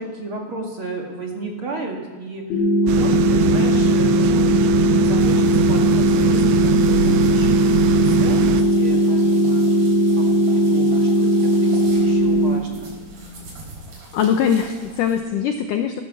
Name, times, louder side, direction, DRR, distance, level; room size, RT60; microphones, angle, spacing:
voice 1, 0.0-4.5 5.0-9.9 10.2-12.9, right 2 dB, 40° right, -1 dB, 2.1 m, -33 dB
sound 1, 2.5-12.5, right 1 dB, 40° left, 2.5 m, -18 dB
sound 2, 2.9-8.6, right 9 dB, 85° right, 2.9 m, -22 dB
sound 3, 5.2-15.2, right 1 dB, 65° right, 6.3 m, -40 dB
voice 2, 14.1-16.0, left 8 dB, 80° left, 6 dB, 1.9 m, -21 dB
15.5 x 13.5 x 7.1 m, 1.3 s
omnidirectional pair, 4.7 m